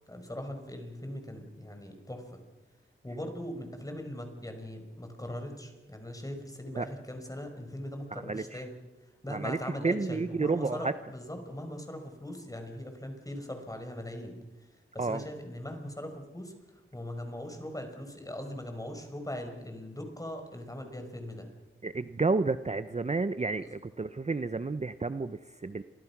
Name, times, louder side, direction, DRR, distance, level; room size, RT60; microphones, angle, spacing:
voice 1, 0.1-2.4 3.0-8.7 9.2-14.3 14.9-16.5 16.9-21.5 23.6-23.8, left 1 dB, 15° left, 5 dB, 5.4 m, -40 dB
voice 2, 8.1-8.6 9.3-10.9 15.0-15.2 21.8-25.8, right 3 dB, 30° right, 12 dB, 0.8 m, -31 dB
29.0 x 24.0 x 6.1 m, 1.1 s
wide cardioid pair, 90°, 21 cm